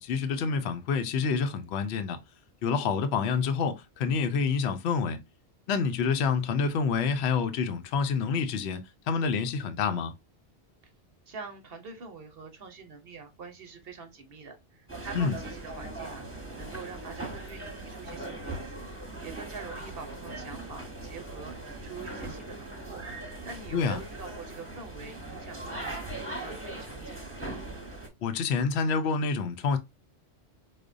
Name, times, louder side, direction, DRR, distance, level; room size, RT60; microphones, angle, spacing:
voice 1, 0.0-2.2 2.6-5.2 5.7-8.8 9.1-10.1 15.1-15.4 23.7-24.0 28.2-29.8, left 5 dB, 70° left, 0.8 m, -27 dB
voice 2, 11.3-16.3 16.6-21.6 21.8-27.3, right 5 dB, 60° right, 0.9 m, -45 dB
sound 1, 14.9-28.1, right 2 dB, 10° right, 1.0 m, -40 dB
4.9 x 2.2 x 2.5 m
omnidirectional pair, 1.2 m